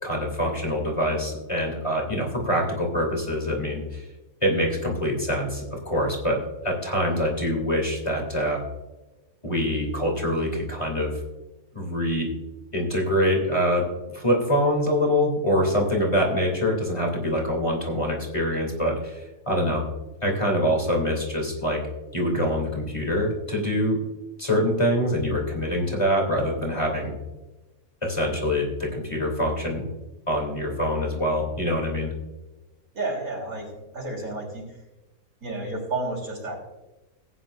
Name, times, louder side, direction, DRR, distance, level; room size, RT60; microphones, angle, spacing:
voice 1, 0.0-4.1 4.4-6.4 6.6-8.6 9.4-11.1 11.7-12.3 12.7-19.8 20.2-21.8 22.1-24.0 24.4-27.1 28.0-29.9 30.3-32.1, equal, 20° left, 0 dB, 2.9 m, -25 dB
voice 2, 32.9-34.8 35.4-36.6, right 2 dB, 75° right, -1 dB, 3.9 m, -31 dB
18.0 x 9.1 x 2.6 m, 1.1 s
omnidirectional pair, 1.5 m